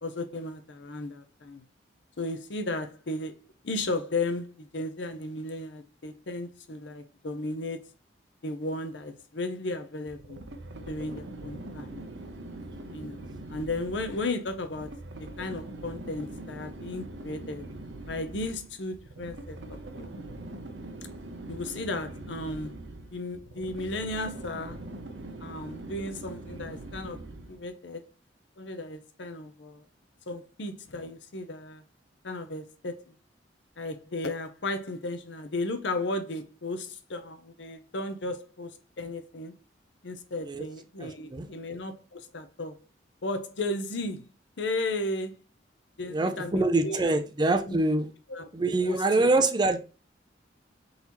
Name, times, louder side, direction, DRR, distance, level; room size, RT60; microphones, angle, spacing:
voice 1, 0.0-1.6 2.2-7.9 8.4-10.4 10.9-12.0 12.9-15.0 15.4-17.7 18.1-20.0 21.5-22.7 23.1-24.8 25.4-27.2 27.5-28.0 28.6-29.8 30.3-31.8 32.2-33.2 33.8-38.7 39.0-39.5 40.0-42.8 43.2-44.3 44.6-45.4 46.0-47.1 47.7-47.8 48.3-48.5 48.8-49.3, left 2 dB, 70° left, 0.7 m, -35 dB
sound 1, 10.1-27.7, right 2 dB, 75° right, 0.7 m, -42 dB
voice 2, 41.0-41.4 46.1-48.1 48.5-49.8, right 2 dB, 25° right, 0.5 m, -25 dB
4.1 x 4.0 x 2.9 m
head